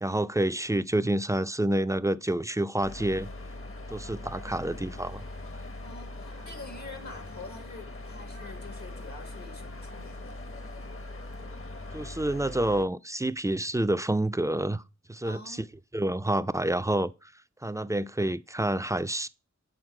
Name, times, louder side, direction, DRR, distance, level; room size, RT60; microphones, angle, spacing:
voice 1, 0.0-3.3 3.9-5.2 11.9-14.8 15.1-15.6 15.9-17.3 17.6-19.3, right 1 dB, 10° right, 0.4 m, -28 dB
sound 1, 2.8-12.8, left 2 dB, 50° left, 0.9 m, -41 dB
voice 2, 5.8-10.4 15.2-15.6, left 3 dB, 70° left, 1.3 m, -46 dB
8.0 x 4.0 x 4.8 m
wide cardioid pair, 40°, 29 cm